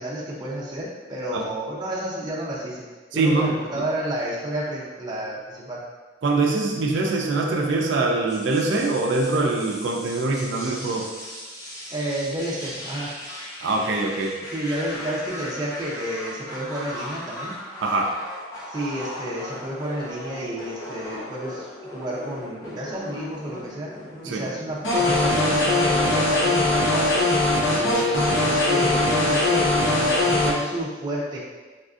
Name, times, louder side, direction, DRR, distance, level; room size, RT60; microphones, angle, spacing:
voice 1, 0.0-2.9 3.1-5.8 11.9-13.2 14.5-17.5 18.7-23.9 24.2-27.3 27.7-31.4, right 1 dB, 20° right, -5 dB, 0.5 m, -31 dB
voice 2, 3.1-3.6 6.2-11.1 13.6-14.4 17.8-18.1 24.2-24.4, right 3 dB, 70° right, 1 dB, 0.4 m, -23 dB
sound 1, 8.3-26.7, left 1 dB, 20° left, 0.6 m, -38 dB
sound 2, 24.8-30.5, left 2 dB, 75° left, 0.8 m, -20 dB
4.1 x 2.5 x 2.4 m, 1.3 s
head